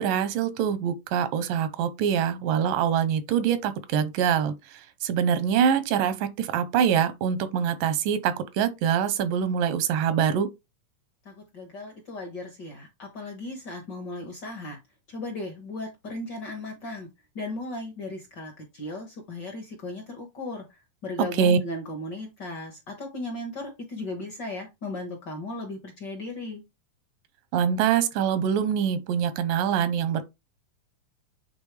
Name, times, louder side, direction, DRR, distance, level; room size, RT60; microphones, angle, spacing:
voice 1, 0.0-4.5 5.0-10.5 21.4-21.6 27.5-30.2, right 8 dB, 85° right, 2.5 m, -24 dB
voice 2, 11.2-14.8 15.1-17.1 17.3-26.6, left 2 dB, 55° left, 1.1 m, -36 dB
8.7 x 3.7 x 3.3 m
omnidirectional pair, 3.8 m